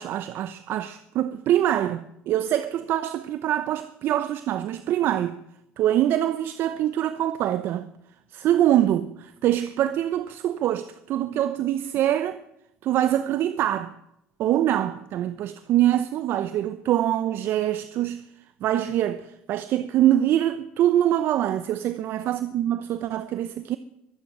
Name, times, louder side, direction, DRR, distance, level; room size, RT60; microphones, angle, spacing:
voice 1, 0.0-5.4 5.8-7.9 8.3-12.4 12.8-13.9 14.4-18.2 18.6-23.8, right 12 dB, 60° right, 0.8 m, -24 dB
23.0 x 9.7 x 6.2 m
supercardioid pair, 105°, 4 cm